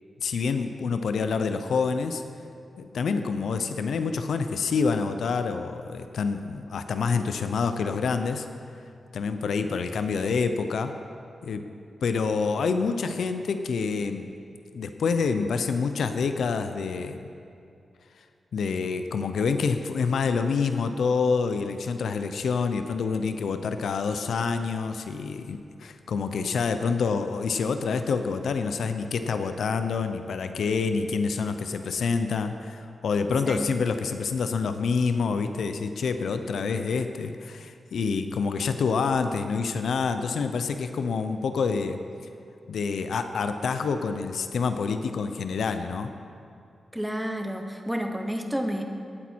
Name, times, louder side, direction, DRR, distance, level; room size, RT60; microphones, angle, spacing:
voice 1, 0.2-2.2 2.8-8.4 9.1-10.9 11.4-11.7 12.0-14.3 14.7-17.2 18.5-42.0 42.7-46.1, left 5 dB, 80° left, 8 dB, 0.6 m, -27 dB
voice 2, 46.9-48.8, equal, 5° right, 4 dB, 1.0 m, -30 dB
17.5 x 8.5 x 4.5 m, 2.6 s
wide cardioid pair, 145°, 0 cm